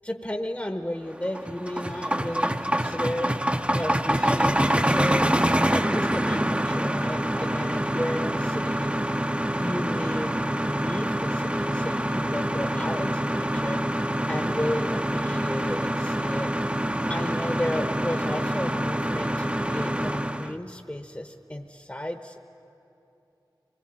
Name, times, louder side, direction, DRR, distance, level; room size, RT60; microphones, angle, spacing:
voice 1, 0.0-3.3 3.7-5.3 5.7-9.0 9.6-10.4 10.6-16.5 17.1-22.4, left 1 dB, 20° left, 5 dB, 1.0 m, -33 dB
sound 1, 1.1-20.5, right 1 dB, 15° right, 0.8 m, -26 dB
25.0 x 20.0 x 8.8 m, 2.9 s
wide cardioid pair, 40°, 8 cm